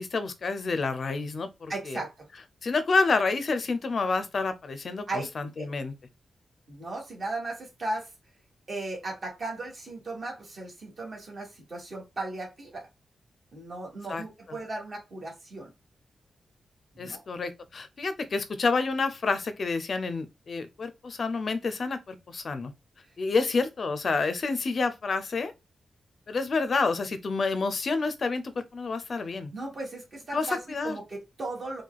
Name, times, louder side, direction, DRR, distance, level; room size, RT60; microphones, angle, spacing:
voice 1, 0.0-2.0 2.6-5.9 14.1-14.2 17.0-22.7 23.2-25.5 26.3-29.5 30.3-31.0, left 4 dB, 50° left, 0.5 m, -29 dB
voice 2, 1.7-2.3 5.1-5.7 6.7-8.1 8.7-12.9 13.5-15.7 16.9-17.2 23.4-23.5 29.5-31.8, right 2 dB, 40° right, 1.6 m, -36 dB
4.6 x 2.3 x 2.3 m
wide cardioid pair, 135°, 0 cm